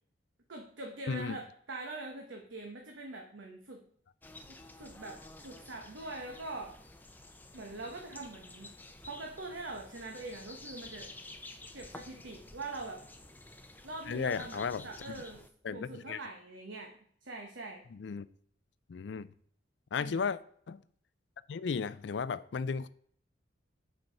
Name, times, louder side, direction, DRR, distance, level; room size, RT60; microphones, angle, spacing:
voice 1, 0.5-3.8 4.5-6.8 7.5-8.8 9.0-11.1 11.7-13.0 13.8-15.4 15.7-17.8 20.0-20.3, right 2 dB, 80° right, 1.0 m, -43 dB
voice 2, 1.1-1.4 14.1-15.2 15.6-16.2 17.9-18.3 18.9-19.3 19.9-20.4 20.7-20.8 21.5-22.9, left 5 dB, 65° left, 0.4 m, -35 dB
sound 1, 4.2-15.5, left 2 dB, 10° left, 0.5 m, -51 dB
7.6 x 4.6 x 5.5 m
head